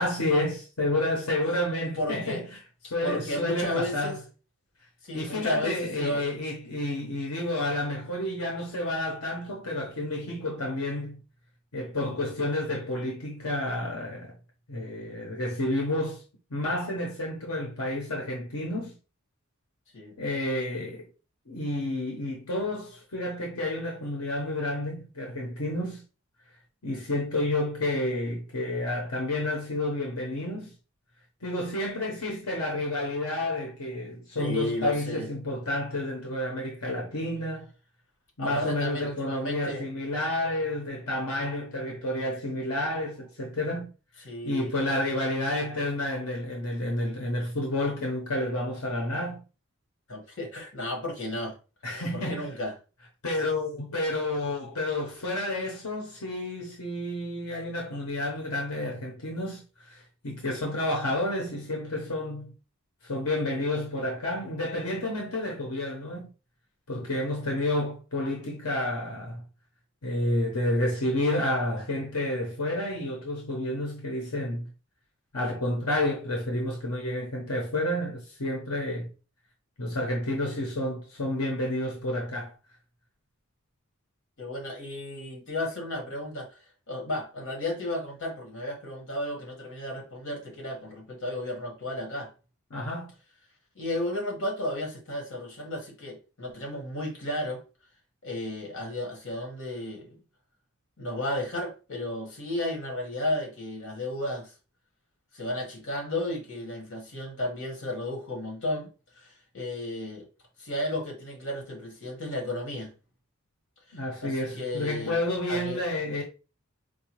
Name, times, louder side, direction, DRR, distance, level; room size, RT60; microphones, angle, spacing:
voice 1, 0.0-2.4 2.8-4.2 5.1-11.2 11.7-14.3 14.7-16.2 16.5-19.0 20.2-21.1 21.5-26.0 26.8-30.7 31.4-37.7 38.4-43.9 44.4-49.4 51.8-52.5 53.2-62.5 63.0-66.3 66.9-69.4 70.0-74.7 75.3-79.1 79.8-82.5 92.7-93.1 113.9-116.2, left 1 dB, 90° left, 0.9 m, -30 dB
voice 2, 2.0-2.4 3.0-4.2 5.0-6.4 19.9-20.2 34.4-35.3 38.4-39.8 44.2-44.7 50.1-51.6 52.1-52.7 84.4-92.3 93.7-97.6 98.2-100.2 101.0-104.5 105.3-110.2 110.6-112.9 113.9-115.2 115.5-115.8, left 1 dB, 60° left, 1.4 m, -33 dB
4.7 x 2.3 x 3.0 m
head